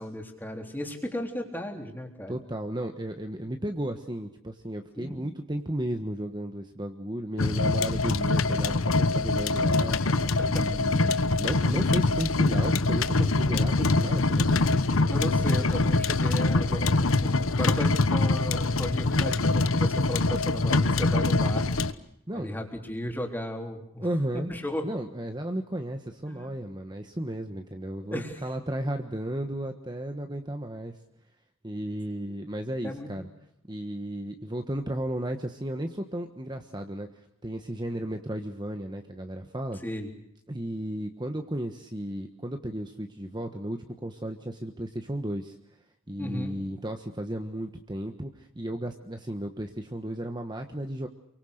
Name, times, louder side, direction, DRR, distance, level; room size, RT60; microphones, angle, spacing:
voice 1, 0.0-2.3 3.4-3.5 5.0-5.2 10.0-10.7 15.1-21.7 22.3-24.1 24.3-24.8 26.3-26.5 28.1-28.4 32.8-33.3 39.8-40.1 46.2-46.6, left 1 dB, 10° left, 3 dB, 3.7 m, -35 dB
voice 2, 2.3-10.0 10.5-11.1 11.4-14.6 22.3-22.7 24.0-24.5 24.8-31.0 31.6-33.3 33.7-37.1 37.4-39.8 40.5-45.6 46.1-51.1, right 1 dB, 20° right, 5 dB, 1.3 m, -34 dB
sound 1, 7.4-21.9, left 3 dB, 90° left, 1.2 m, -24 dB
28.5 x 24.0 x 6.6 m, 0.78 s
head